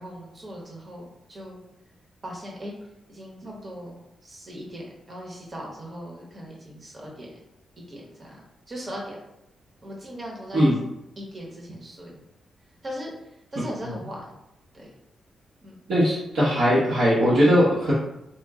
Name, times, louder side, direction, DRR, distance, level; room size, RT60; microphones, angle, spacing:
voice 1, 0.0-1.6 2.2-2.7 3.1-7.4 7.9-8.4 8.7-9.2 9.8-10.7 11.2-12.1 12.8-13.1 13.5-14.2 14.7-14.9 15.6-15.8, equal, 30° right, -2 dB, 0.9 m, -38 dB
voice 2, 15.9-17.9, equal, 85° right, -9 dB, 1.1 m, -20 dB
4.2 x 2.1 x 3.6 m, 0.85 s
wide cardioid pair, 130°, 0 cm